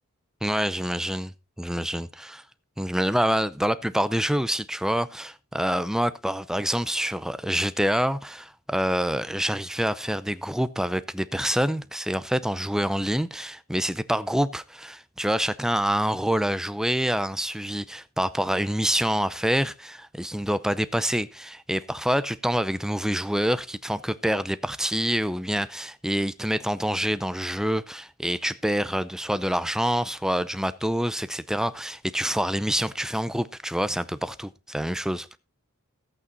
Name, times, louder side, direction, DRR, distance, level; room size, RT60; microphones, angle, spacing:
voice 1, 0.4-1.3 1.6-2.4 2.8-35.4, equal, 5° right, 0.5 m, -26 dB
14.0 x 8.6 x 4.0 m
head